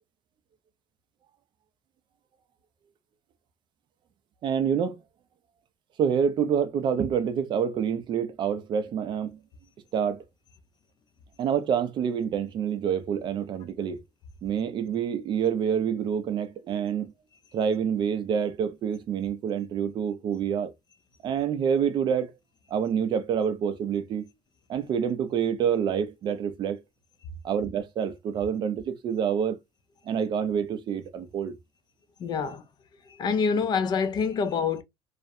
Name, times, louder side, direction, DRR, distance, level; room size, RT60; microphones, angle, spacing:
voice 1, 4.4-5.0 6.0-9.4 9.9-10.2 11.4-14.0 14.4-17.1 17.5-20.7 21.2-22.3 22.7-24.3 24.7-26.8 27.4-29.6 30.1-31.5, right 7 dB, 40° right, 0.4 m, -27 dB
voice 2, 32.2-32.6 33.1-34.8, left 5 dB, 35° left, 0.3 m, -26 dB
2.4 x 2.0 x 2.5 m
cardioid pair, 160°, 12 cm